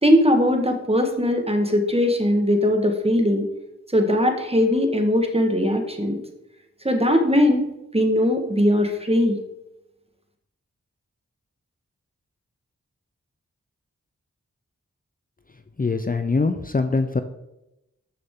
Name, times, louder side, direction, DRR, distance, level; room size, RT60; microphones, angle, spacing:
voice 1, 0.0-3.4 3.9-6.2 6.8-7.6 7.9-9.4, left 1 dB, 20° right, 5 dB, 1.7 m, -20 dB
voice 2, 15.8-17.2, left 3 dB, 30° left, 8 dB, 0.6 m, -23 dB
12.5 x 6.6 x 3.7 m, 0.92 s
wide cardioid pair, 50°, 29 cm